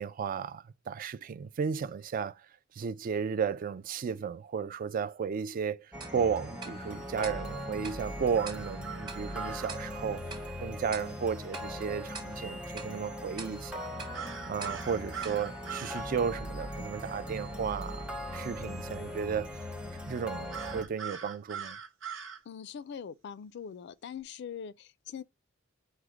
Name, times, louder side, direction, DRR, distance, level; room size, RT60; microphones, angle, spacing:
voice 1, 0.0-2.4 2.7-10.2 10.6-14.1 14.5-19.7 20.1-21.8, right 6 dB, 45° right, 0.3 m, -34 dB
sound 1, 5.9-20.8, equal, 5° right, 0.6 m, -40 dB
Tick-tock, 6.0-16.5, right 4 dB, 20° right, 1.0 m, -49 dB
sound 2, 8.3-9.7 14.1-16.0 20.5-22.4, right 7 dB, 75° right, 0.9 m, -41 dB
voice 2, 22.5-25.2, left 7 dB, 60° left, 0.3 m, -42 dB
4.9 x 2.1 x 4.4 m
head